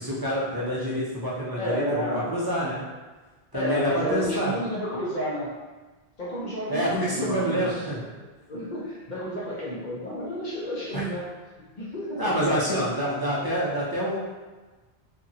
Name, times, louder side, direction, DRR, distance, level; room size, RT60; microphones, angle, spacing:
voice 1, 0.0-2.8 3.5-4.5 6.7-8.0 10.9-11.0 12.2-14.2, equal, 30° right, -7 dB, 0.5 m, -27 dB
voice 2, 1.5-2.4 3.5-5.5 6.2-8.2 8.5-11.3 11.6-12.4, equal, 50° left, -6 dB, 0.7 m, -31 dB
2.8 x 2.6 x 2.7 m, 1.3 s
omnidirectional pair, 1.1 m